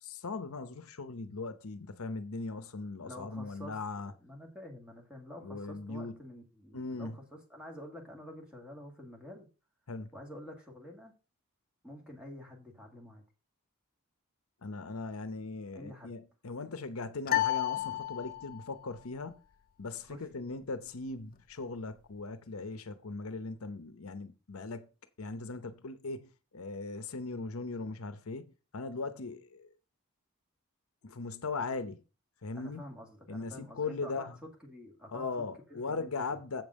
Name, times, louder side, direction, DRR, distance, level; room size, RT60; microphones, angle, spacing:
voice 1, 0.0-4.1 5.4-6.2 6.7-7.2 9.9-10.1 14.6-19.4 19.8-24.9 25.2-29.7 31.0-32.0 32.4-32.8 33.3-34.4 35.1-36.6, left 3 dB, 75° left, 0.8 m, -39 dB
voice 2, 3.0-3.8 4.2-9.5 10.1-11.1 11.8-13.2 15.7-16.1 20.1-20.5 32.5-34.3 34.6-35.2 35.7-36.4, left 1 dB, 5° right, 2.1 m, -48 dB
sound 1, 17.3-18.8, left 13 dB, 40° left, 0.3 m, -31 dB
7.7 x 5.3 x 6.4 m
head